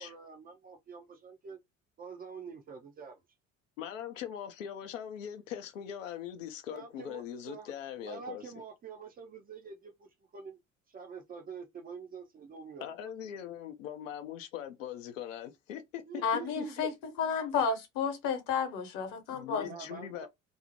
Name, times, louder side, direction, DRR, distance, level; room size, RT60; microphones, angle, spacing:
voice 1, 0.0-1.6 2.0-3.2 6.7-7.7 8.0-10.1 10.3-10.6 10.9-13.1 16.1-16.9 19.6-20.3, right 6 dB, 25° right, 0.4 m, -46 dB
voice 2, 3.8-8.5 12.8-16.0 16.6-16.9 19.3-20.3, left 10 dB, 75° left, 0.5 m, -41 dB
voice 3, 16.2-16.9 17.2-19.7, left 6 dB, 55° left, 0.9 m, -31 dB
2.6 x 2.0 x 2.7 m
figure-of-eight pair, 60°, 39 cm